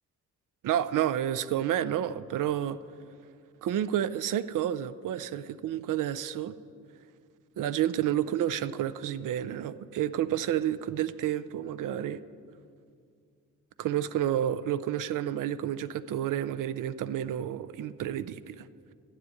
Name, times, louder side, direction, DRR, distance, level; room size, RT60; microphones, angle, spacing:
voice 1, 0.6-2.8 3.6-6.5 7.6-12.2 13.8-18.7, right 11 dB, 75° right, 15 dB, 0.5 m, -30 dB
12.0 x 7.4 x 9.9 m, 2.3 s
cardioid pair, 125°, 32 cm